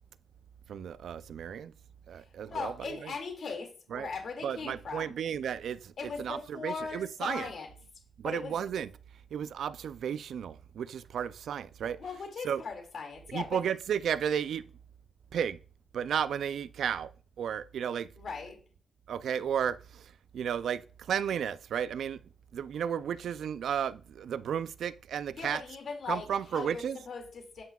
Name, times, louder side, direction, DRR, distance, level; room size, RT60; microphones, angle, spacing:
voice 1, 0.7-1.7 2.1-3.2 3.9-4.1 4.4-7.5 8.2-8.9 9.3-12.6 13.3-14.7 15.3-15.6 15.9-17.1 17.4-18.1 19.1-22.2 22.5-25.6 26.0-27.0, right 8 dB, 80° right, 0.3 m, -33 dB
voice 2, 2.2-5.1 6.0-7.7 8.2-8.6 12.0-13.6 18.2-18.6 25.3-26.3 26.5-27.6, left 5 dB, 70° left, 2.1 m, -39 dB
9.1 x 5.8 x 2.3 m
cardioid pair, 75°, 0 cm